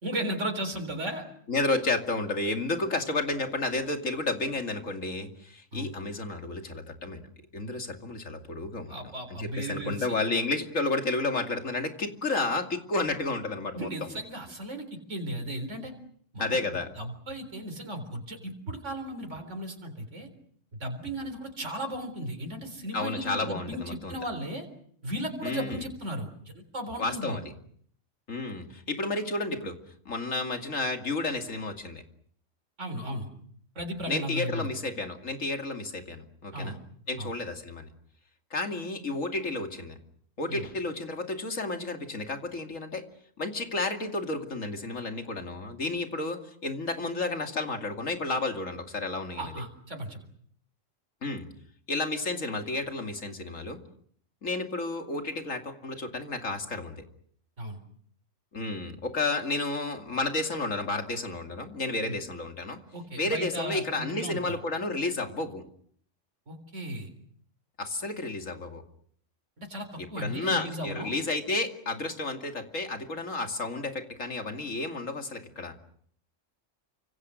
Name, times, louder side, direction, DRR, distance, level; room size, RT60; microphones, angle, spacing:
voice 1, 0.0-1.2 5.7-5.9 8.9-10.2 13.8-15.9 16.3-16.6 17.0-20.3 20.7-24.7 25.0-27.4 32.8-33.3 33.8-34.7 36.5-36.8 37.2-37.3 40.5-40.6 49.4-50.2 57.6-57.8 62.1-62.2 62.9-64.5 66.5-67.1 69.6-71.1, right 1 dB, 65° right, 5 dB, 4.3 m, -35 dB
voice 2, 1.5-7.2 7.5-9.0 9.4-13.9 16.4-16.9 22.9-24.2 25.4-25.8 27.0-27.5 28.3-29.8 30.0-32.0 34.1-36.8 37.1-37.9 38.5-40.0 40.4-43.0 43.4-49.5 51.2-51.5 51.9-53.8 54.4-57.0 58.5-62.8 63.2-65.6 67.8-68.8 70.0-75.7, left 2 dB, 85° left, 5 dB, 3.0 m, -31 dB
29.0 x 26.0 x 6.4 m, 0.62 s
omnidirectional pair, 1.3 m